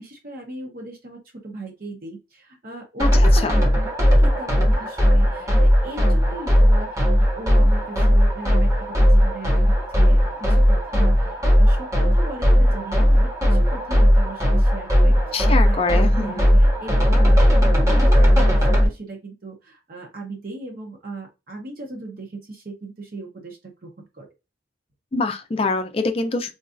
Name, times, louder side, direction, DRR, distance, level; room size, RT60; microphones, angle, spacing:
voice 1, 0.0-3.1 3.4-15.8 16.1-24.3, right 2 dB, 55° right, 0.8 m, -37 dB
voice 2, 3.0-3.6 15.3-16.5 25.1-26.5, left 3 dB, 30° left, 0.4 m, -24 dB
sound 1, 3.0-18.9, equal, 20° right, 0.8 m, -17 dB
3.9 x 2.4 x 2.4 m
head